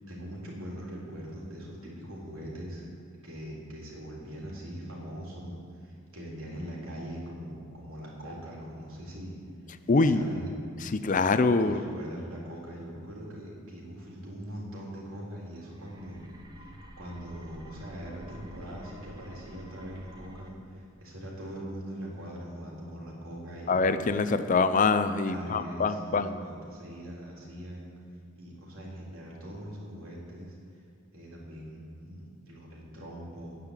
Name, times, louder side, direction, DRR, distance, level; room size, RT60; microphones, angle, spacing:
voice 1, 0.1-2.9 3.2-9.4 10.0-10.6 11.6-16.2 16.6-16.7 17.0-23.8 25.3-27.9 28.4-30.5 31.1-33.6, equal, 80° right, -4 dB, 3.7 m, -41 dB
voice 2, 9.9-10.3 10.8-11.8 23.7-26.3, left 4 dB, 40° left, 11 dB, 0.5 m, -24 dB
sound 1, 15.6-20.5, equal, 20° right, 1.1 m, -49 dB
10.0 x 9.5 x 8.2 m, 2.4 s
head